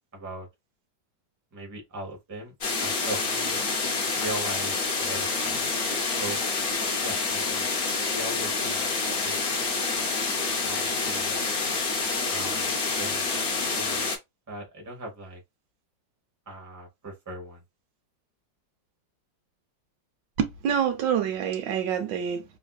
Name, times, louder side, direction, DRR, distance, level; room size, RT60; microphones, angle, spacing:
voice 1, 0.1-0.5 1.5-3.6 4.2-5.6 6.2-6.4 7.0-7.7 8.1-8.9 9.2-9.7 10.6-11.4 12.3-14.1 14.5-15.4 16.5-17.6, right 2 dB, 15° right, 0.6 m, -39 dB
sound 1, 2.6-14.2, left 4 dB, 85° left, 0.5 m, -27 dB
voice 2, 20.4-22.4, right 8 dB, 80° right, 1.3 m, -26 dB
3.4 x 2.4 x 2.3 m
omnidirectional pair, 2.0 m